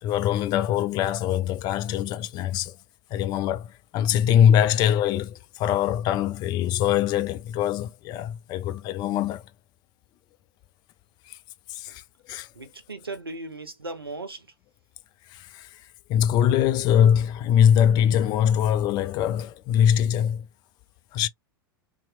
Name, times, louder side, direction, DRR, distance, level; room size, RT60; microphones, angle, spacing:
voice 1, 0.0-2.7 3.1-9.4 11.3-11.4 11.7-12.0 12.3-12.5 15.3-15.7 16.1-20.4 21.1-21.3, left 9 dB, 35° left, 0.4 m, -22 dB
voice 2, 12.5-14.5, right 2 dB, 85° right, 0.6 m, -37 dB
2.8 x 2.0 x 2.5 m
figure-of-eight pair, 90°, 12 cm